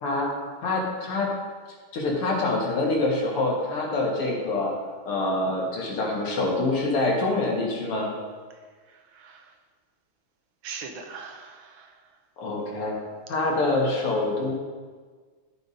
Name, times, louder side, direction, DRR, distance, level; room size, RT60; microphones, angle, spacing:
voice 1, 0.0-1.3 1.9-4.7 5.1-8.1 12.4-13.0 13.3-14.5, left 2 dB, 85° left, -2 dB, 2.7 m, -26 dB
voice 2, 8.5-9.6 10.6-12.2, right 5 dB, 70° right, 4 dB, 1.6 m, -42 dB
13.0 x 5.1 x 4.2 m, 1.5 s
omnidirectional pair, 2.4 m